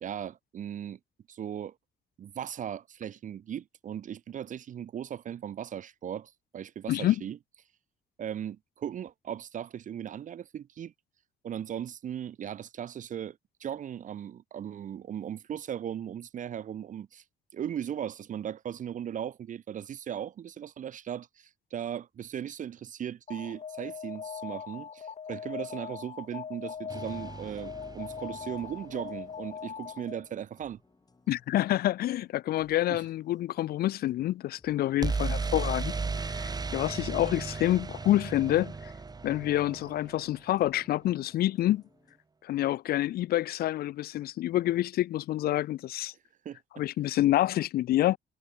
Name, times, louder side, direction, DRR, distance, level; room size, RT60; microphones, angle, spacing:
voice 1, 0.0-1.0 1.3-1.7 2.2-7.4 8.2-10.9 11.4-17.2 17.5-30.8 32.9-33.0 46.4-46.6, right 9 dB, 50° right, 0.8 m, -38 dB
Alarm, 23.3-30.4, left 7 dB, 45° left, 3.9 m, -41 dB
sound 1, 26.7-42.2, left 3 dB, 25° left, 6.4 m, -64 dB
sound 2, 26.9-28.9 35.0-40.8, right 4 dB, 25° right, 2.0 m, -35 dB
voice 2, 31.3-35.9 36.2-38.9 39.2-41.8 42.4-46.1 46.8-48.2, left 14 dB, 65° left, 0.4 m, -27 dB
cardioid pair, 120°, 17 cm